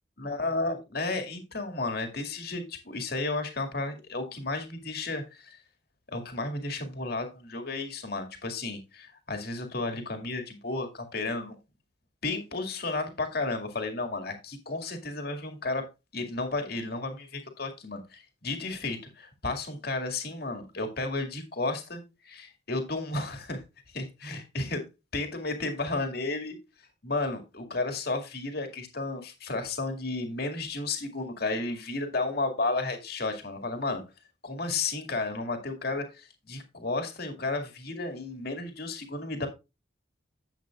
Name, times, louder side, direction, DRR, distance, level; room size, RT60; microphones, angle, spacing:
voice 1, 0.2-5.6 6.1-11.6 12.2-15.8 16.1-23.6 23.9-24.8 25.1-26.6 27.0-34.0 34.4-39.5, left 3 dB, 55° left, 2.2 m, -33 dB
11.5 x 8.0 x 2.4 m
head